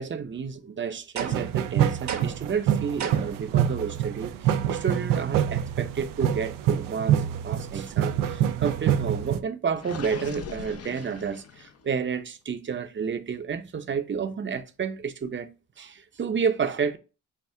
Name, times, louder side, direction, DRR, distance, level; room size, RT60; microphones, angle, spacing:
voice 1, 0.0-15.5 15.8-17.0, right 6 dB, 35° right, 0.7 m, -31 dB
sound 1, 1.2-1.6 2.1-2.5 3.0-3.4, right 7 dB, 60° right, 1.0 m, -32 dB
sound 2, 1.2-9.4, right 10 dB, 90° right, 0.5 m, -26 dB
Gurgling, 9.8-11.9, left 7 dB, 50° left, 0.7 m, -40 dB
5.7 x 2.3 x 3.5 m
cardioid pair, 70°, 32 cm